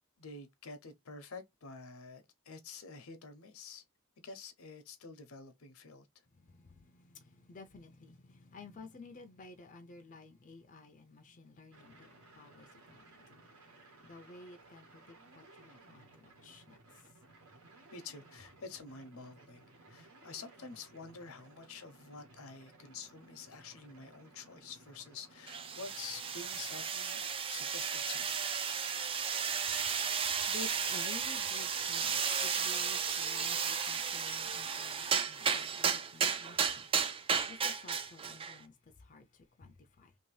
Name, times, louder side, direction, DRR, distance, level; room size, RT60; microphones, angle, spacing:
voice 1, 0.2-3.8 4.2-6.1 17.9-28.4, left 4 dB, 80° left, 0.8 m, -48 dB
voice 2, 6.5-12.1 12.3-13.5 14.0-16.8 30.5-36.9 37.5-40.1, left 3 dB, 35° left, 0.5 m, -53 dB
sound 1, 11.7-26.9, right 2 dB, 80° right, 1.3 m, -59 dB
sound 2, 25.5-38.6, right 6 dB, 25° right, 0.3 m, -34 dB
2.9 x 2.7 x 3.1 m
head